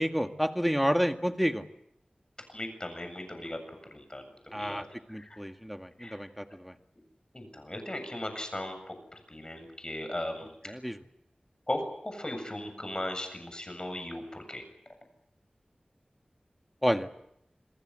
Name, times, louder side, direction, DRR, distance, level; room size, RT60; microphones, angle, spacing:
voice 1, 0.0-1.6 4.5-4.8 5.1-6.7 10.7-11.0 16.8-17.1, equal, ahead, 6 dB, 1.9 m, -29 dB
voice 2, 2.5-3.6 3.9-5.4 6.0-6.2 7.3-10.6 11.7-14.6, left 1 dB, 30° left, 6 dB, 7.6 m, -37 dB
28.0 x 20.0 x 7.7 m, 0.76 s
wide cardioid pair, 65°, 3 cm